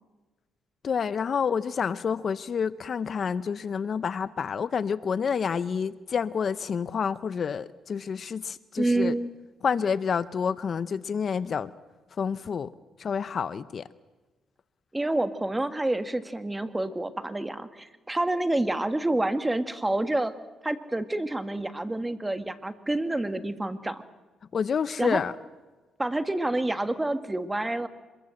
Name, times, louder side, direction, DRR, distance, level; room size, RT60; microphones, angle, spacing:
voice 1, 0.8-9.1 9.6-11.7 12.2-12.7 13.0-13.8 24.5-25.3, left 6 dB, 50° left, 16 dB, 0.7 m, -28 dB
voice 2, 8.8-9.3 9.7-9.8 14.9-20.3 20.6-24.0 25.0-25.2 26.0-27.9, right 2 dB, 15° right, 10 dB, 1.7 m, -28 dB
25.0 x 22.0 x 7.8 m, 1.2 s
cardioid pair, 90°, 0 cm